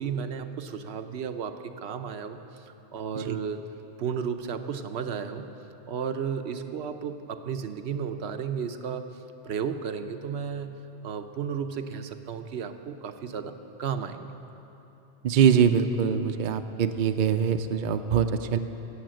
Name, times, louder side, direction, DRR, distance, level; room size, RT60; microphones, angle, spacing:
voice 1, 0.0-3.6 4.0-5.5 5.9-9.1 9.4-14.4, right 7 dB, 75° right, 7 dB, 1.0 m, -33 dB
voice 2, 15.2-18.6, right 7 dB, 55° right, 8 dB, 0.7 m, -23 dB
18.0 x 7.4 x 7.6 m, 3.0 s
omnidirectional pair, 1.1 m